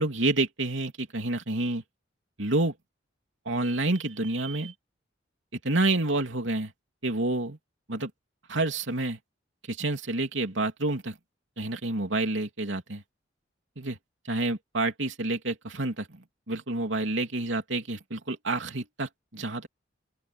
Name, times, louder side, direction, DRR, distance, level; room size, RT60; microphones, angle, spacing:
voice 1, 0.0-1.8 2.4-2.7 3.4-4.7 5.6-6.7 7.0-7.6 7.9-8.1 8.5-9.2 9.7-11.1 11.6-13.0 13.8-14.0 14.3-16.2 16.5-19.7, right 2 dB, 85° right, 3.1 m, -28 dB
open air
head